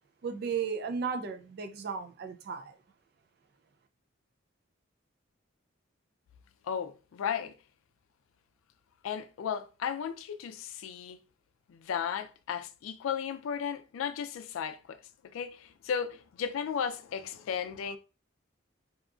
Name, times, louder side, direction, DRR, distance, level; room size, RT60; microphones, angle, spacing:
voice 1, 0.2-2.8, right 6 dB, 50° right, 0.3 m, -35 dB
voice 2, 6.6-7.6 9.0-11.2 11.7-18.0, left 7 dB, 85° left, 0.3 m, -35 dB
2.8 x 2.3 x 2.4 m
head